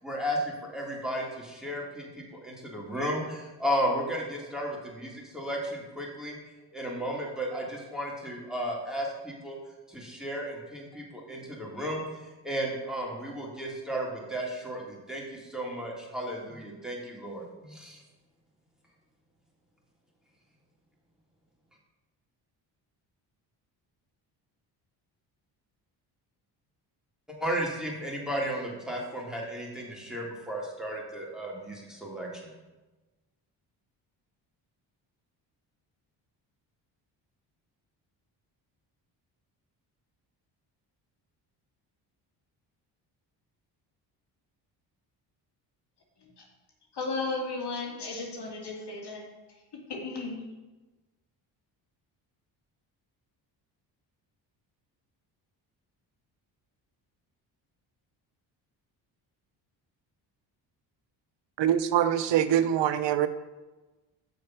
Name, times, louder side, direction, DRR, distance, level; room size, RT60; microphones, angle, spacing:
voice 1, 0.0-6.4 6.7-9.6 9.9-18.0 27.3-32.6, equal, ahead, -3 dB, 3.2 m, -34 dB
voice 2, 46.9-49.6 49.9-50.4, left 3 dB, 55° left, 0 dB, 2.6 m, -35 dB
voice 3, 61.6-63.3, right 10 dB, 65° right, 13 dB, 0.8 m, -24 dB
7.0 x 6.4 x 6.1 m, 1.2 s
supercardioid pair, 60°, 48 cm